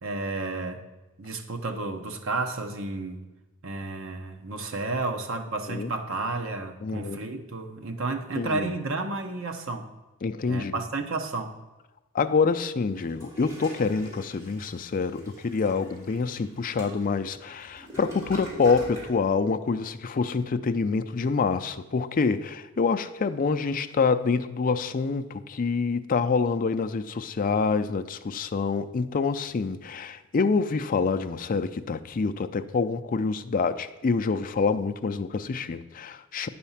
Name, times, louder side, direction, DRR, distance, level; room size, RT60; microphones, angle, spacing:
voice 1, 0.0-0.9 1.2-3.3 3.6-9.9 10.4-11.5, right 3 dB, 65° right, 5 dB, 0.9 m, -32 dB
voice 2, 6.8-7.2 8.4-8.7 10.2-10.8 12.1-36.5, left 4 dB, 40° left, 10 dB, 0.4 m, -26 dB
Toilet flush, 13.0-19.2, equal, 15° right, 2.8 m, -44 dB
9.1 x 4.3 x 7.2 m, 1.1 s
head